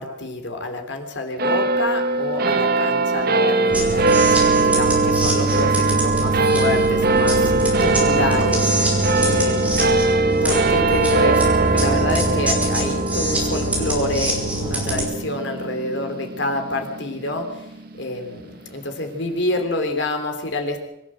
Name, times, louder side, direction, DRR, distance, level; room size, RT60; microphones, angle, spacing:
voice 1, 0.0-4.1 4.6-8.7 9.2-10.0 10.4-17.5 18.0-20.8, left 2 dB, 60° left, 5 dB, 3.4 m, -27 dB
sound 1, 1.4-18.1, right 3 dB, 50° right, 1.5 m, -21 dB
sound 2, 3.7-15.1, right 1 dB, 5° right, 5.0 m, -24 dB
25.0 x 14.0 x 7.7 m, 0.90 s
head